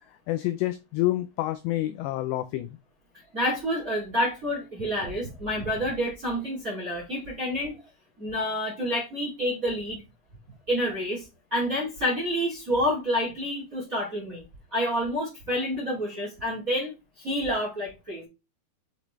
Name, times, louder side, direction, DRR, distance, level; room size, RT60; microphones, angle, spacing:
voice 1, 0.3-2.7, left 16 dB, 85° left, 8 dB, 2.4 m, -28 dB
voice 2, 3.3-7.8 8.2-10.0 10.7-14.4 14.7-18.3, equal, 25° right, -5 dB, 1.8 m, -28 dB
7.2 x 5.1 x 3.1 m, 0.26 s
omnidirectional pair, 5.6 m